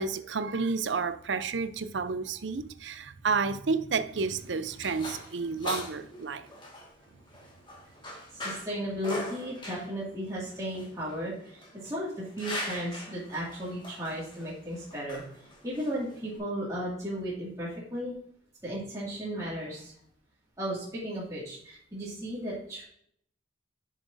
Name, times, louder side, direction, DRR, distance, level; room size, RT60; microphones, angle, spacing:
voice 1, 0.0-6.5, right 4 dB, 70° right, 0.6 m, -31 dB
sound 1, 4.1-16.4, left 1 dB, 25° left, 1.7 m, -42 dB
voice 2, 8.3-15.2 15.6-18.1 18.6-19.9 20.6-22.9, equal, 15° right, 2.2 m, -35 dB
9.5 x 5.9 x 2.6 m
head